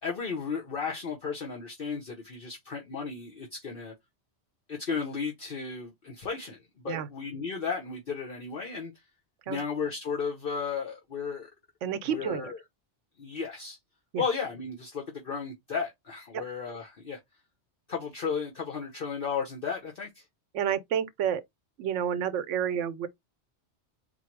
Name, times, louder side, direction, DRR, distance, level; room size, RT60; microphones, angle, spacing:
voice 1, 0.0-3.9 4.7-8.9 9.5-11.5 12.1-12.6 13.2-13.8 14.2-17.2 17.9-20.2, left 5 dB, 55° left, 1.0 m, -34 dB
voice 2, 11.8-12.5 14.1-14.2 16.3-16.4 20.5-21.4 21.8-23.1, right 8 dB, 90° right, 1.0 m, -30 dB
4.4 x 2.0 x 4.4 m
omnidirectional pair, 1.2 m